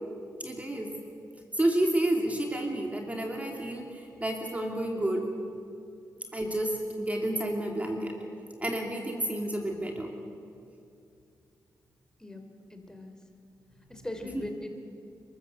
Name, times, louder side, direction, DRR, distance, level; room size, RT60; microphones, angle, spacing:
voice 1, 0.4-0.9 1.5-5.3 6.3-8.2 8.6-10.1 14.2-14.5, right 1 dB, 20° right, 1 dB, 2.6 m, -30 dB
voice 2, 12.7-13.2 13.9-14.7, left 1 dB, 10° left, 5 dB, 3.4 m, -39 dB
29.5 x 14.0 x 8.1 m, 2.5 s
cardioid pair, 70°, 7 cm